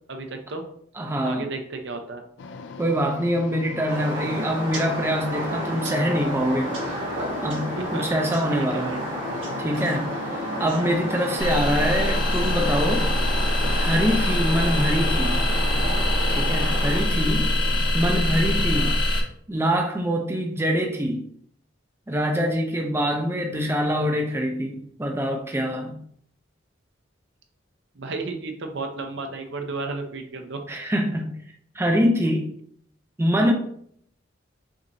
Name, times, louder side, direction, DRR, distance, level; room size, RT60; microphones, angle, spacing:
voice 1, 0.1-0.6 1.2-2.2 7.8-8.0 8.5-9.0 18.8-19.0 27.9-30.6, right 3 dB, 60° right, 5 dB, 0.6 m, -33 dB
voice 2, 1.0-1.5 2.8-6.7 7.4-8.9 9.6-13.1 13.6-15.4 16.3-17.5 17.9-18.9 19.5-21.2 22.1-26.0 30.7-31.4 31.7-32.5 33.2-33.5, equal, 15° right, 2 dB, 0.4 m, -24 dB
sound 1, 2.4-18.8, left 4 dB, 65° left, 0.4 m, -38 dB
sound 2, 3.9-17.0, equal, 85° right, 1.6 m, -31 dB
sound 3, 11.4-19.2, left 1 dB, 25° left, 0.8 m, -23 dB
6.1 x 2.9 x 2.6 m, 0.66 s
head